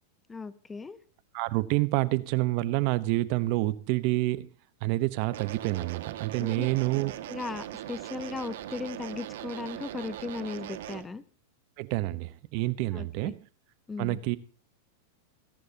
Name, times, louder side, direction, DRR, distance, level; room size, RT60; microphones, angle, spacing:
voice 1, 0.3-1.0 6.4-6.7 7.3-11.2 12.9-13.3 13.9-14.2, left 4 dB, 15° left, 15 dB, 1.0 m, -37 dB
voice 2, 1.3-4.5 4.8-7.1 11.8-13.4 14.0-14.4, right 19 dB, 55° right, 16 dB, 1.0 m, -28 dB
sound 1, 5.3-11.0, right 12 dB, 75° right, 1.8 m, -40 dB
29.0 x 10.5 x 2.9 m, 0.36 s
hypercardioid pair, 125°, 0 cm